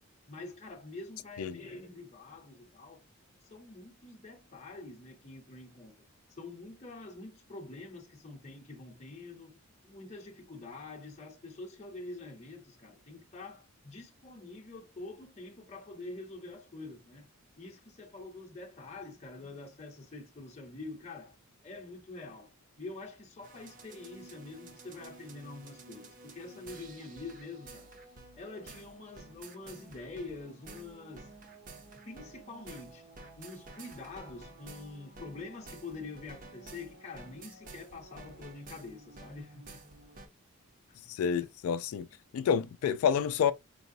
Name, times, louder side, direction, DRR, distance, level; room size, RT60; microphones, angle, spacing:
voice 1, 0.3-3.0 3.5-6.0 6.3-17.3 17.6-21.4 21.6-22.5 22.8-27.9 28.4-31.3 32.0-33.1 33.4-39.8 40.9-41.0, left 3 dB, 30° left, 0.6 m, -46 dB
sound 1, 23.4-40.3, right 3 dB, 35° right, 0.5 m, -51 dB
voice 2, 41.1-42.1 42.3-43.5, left 7 dB, 75° left, 0.3 m, -28 dB
4.6 x 2.0 x 2.6 m
head